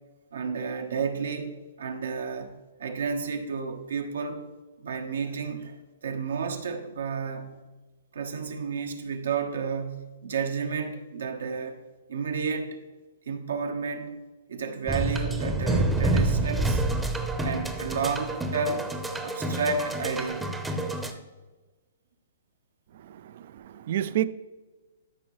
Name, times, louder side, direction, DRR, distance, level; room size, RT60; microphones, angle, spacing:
voice 1, 0.3-4.4 4.8-5.7 6.0-7.6 8.1-11.8 12.1-12.8 13.3-14.1 14.5-16.8 17.4-18.9 19.2-20.5, right 5 dB, 80° right, 1.1 m, -31 dB
sound 1, 14.9-21.1, right 2 dB, 5° right, 0.7 m, -28 dB
voice 2, 23.0-24.3, right 12 dB, 55° right, 0.4 m, -30 dB
13.0 x 5.3 x 3.1 m
hypercardioid pair, 140°, 0 cm